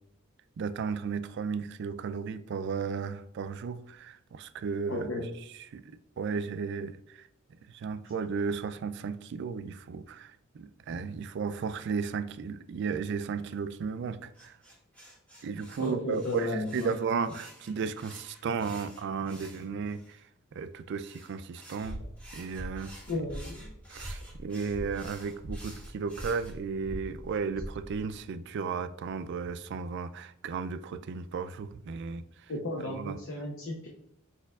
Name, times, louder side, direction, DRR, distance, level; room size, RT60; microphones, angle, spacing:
voice 1, 0.6-5.1 5.7-7.3 7.7-14.6 15.4-20.2 20.5-22.0 22.3-22.9 23.9-32.2 32.8-33.2, right 5 dB, 55° right, 0.3 m, -34 dB
voice 2, 4.9-5.3 15.8-16.9 23.1-23.7 24.8-24.9 32.5-33.9, left 2 dB, 65° left, 0.7 m, -34 dB
sound 1, 14.3-20.2 21.0-26.5, right 1 dB, 5° left, 1.4 m, -52 dB
sound 2, 21.8-28.2, right 1 dB, 15° right, 1.0 m, -43 dB
5.0 x 4.4 x 2.3 m
head